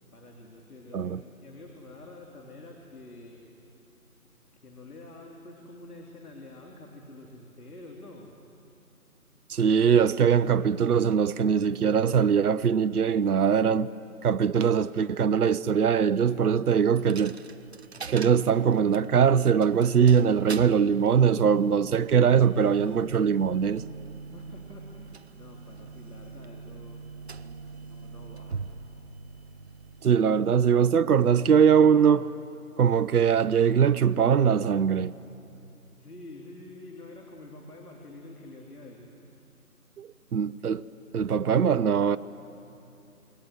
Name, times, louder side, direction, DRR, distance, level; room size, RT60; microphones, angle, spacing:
voice 1, 0.1-3.8 4.5-8.3 24.3-27.1 27.4-28.9 36.0-39.1, left 2 dB, 80° left, 3.5 m, -47 dB
voice 2, 9.5-13.9 14.2-17.4 18.1-23.8 30.0-32.3 32.8-35.1 40.0-40.8 41.1-42.2, right 7 dB, 80° right, 0.7 m, -22 dB
Coin (dropping), 17.0-30.7, right 5 dB, 45° right, 0.7 m, -43 dB
28.0 x 22.0 x 7.9 m
figure-of-eight pair, 165°, 44 cm